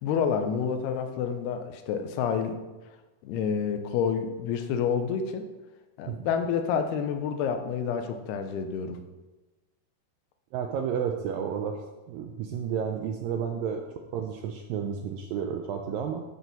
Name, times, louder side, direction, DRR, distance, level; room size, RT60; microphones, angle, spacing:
voice 1, 0.0-2.6 3.2-5.5 6.0-9.0, left 7 dB, 80° left, 6 dB, 2.8 m, -28 dB
voice 2, 10.5-11.8 12.1-13.8 14.1-16.2, right 7 dB, 85° right, 3 dB, 2.0 m, -31 dB
12.5 x 4.7 x 5.3 m, 1.1 s
omnidirectional pair, 4.7 m